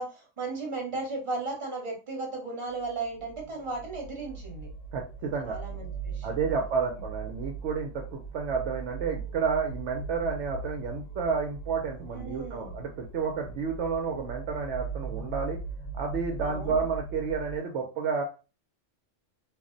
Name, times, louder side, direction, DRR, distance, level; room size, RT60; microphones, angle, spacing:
voice 1, 0.0-4.7 5.4-6.4 6.9-7.0 12.1-12.8 16.4-16.8, right 3 dB, 25° right, 0 dB, 0.9 m, -36 dB
sound 1, 2.8-17.6, right 4 dB, 85° left, 1.0 m, -40 dB
voice 2, 4.9-5.6 6.2-15.6 15.9-18.2, right 5 dB, 70° right, 2 dB, 0.8 m, -30 dB
2.4 x 2.0 x 3.7 m, 0.33 s
omnidirectional pair, 1.3 m